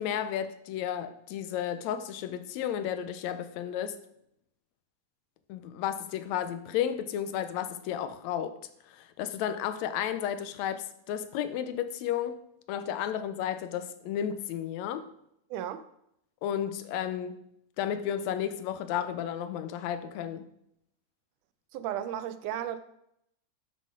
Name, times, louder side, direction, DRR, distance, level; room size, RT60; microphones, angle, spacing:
voice 1, 0.0-4.0 5.5-8.6 8.9-12.4 12.7-15.1 16.4-17.4 17.8-20.5, left 9 dB, 75° left, 1.8 m, -33 dB
voice 2, 15.5-15.8 21.7-22.8, right 11 dB, 90° right, 2.2 m, -34 dB
12.5 x 6.6 x 3.8 m
omnidirectional pair, 3.5 m